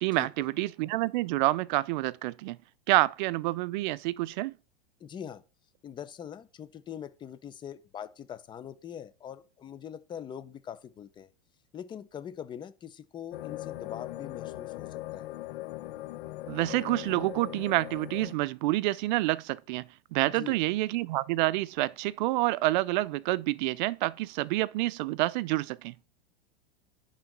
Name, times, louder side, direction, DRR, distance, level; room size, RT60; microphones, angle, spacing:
voice 1, 0.0-2.6 2.9-4.5 16.5-25.9, right 18 dB, 50° right, 0.5 m, -28 dB
voice 2, 5.0-5.4 5.8-11.3 11.7-15.3 20.2-20.6, left 9 dB, 15° left, 0.6 m, -43 dB
sound 1, 13.3-18.3, left 16 dB, 60° left, 0.8 m, -40 dB
10.5 x 3.9 x 6.0 m
supercardioid pair, 150°, 29 cm